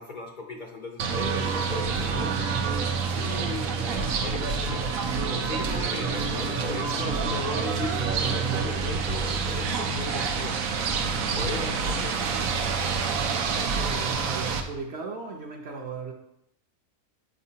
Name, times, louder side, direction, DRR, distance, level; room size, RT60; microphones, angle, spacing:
voice 1, 0.0-2.4 3.1-4.9 5.3-10.6 11.3-12.5, left 3 dB, 50° left, 0.6 m, -37 dB
sound 1, 1.0-14.6, right 5 dB, 90° right, 1.1 m, -27 dB
voice 2, 13.6-16.1, right 4 dB, 60° right, 0.9 m, -36 dB
7.2 x 5.0 x 2.8 m
omnidirectional pair, 1.4 m